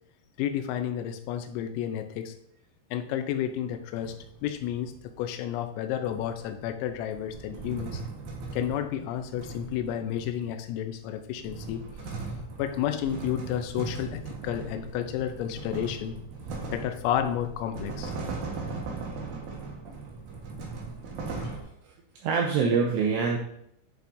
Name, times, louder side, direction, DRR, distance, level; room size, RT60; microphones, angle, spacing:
voice 1, 0.4-2.4 2.9-4.2 4.4-4.9 5.2-8.0 8.5-12.2 12.6-16.2 16.7-18.1 21.4-21.6, left 10 dB, 90° left, 8 dB, 3.4 m, -31 dB
sound 1, 3.7-5.1 6.0-10.6 11.2-21.6, right 3 dB, 65° right, 2.6 m, -39 dB
voice 2, 22.2-23.4, right 5 dB, 80° right, 0 dB, 2.6 m, -25 dB
11.0 x 6.8 x 2.7 m, 0.71 s
omnidirectional pair, 5.8 m